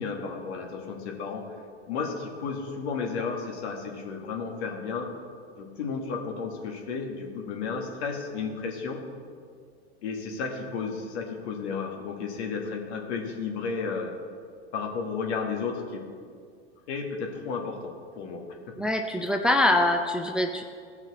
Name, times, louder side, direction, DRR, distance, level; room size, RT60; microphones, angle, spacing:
voice 1, 0.0-1.5 1.9-5.1 5.6-9.0 10.0-14.1 14.7-16.1 16.9-18.8, left 5 dB, 75° left, 2 dB, 1.8 m, -33 dB
voice 2, 18.8-20.6, left 1 dB, 5° right, 4 dB, 0.4 m, -24 dB
15.5 x 5.8 x 4.1 m, 2.2 s
hypercardioid pair, 110°, 33 cm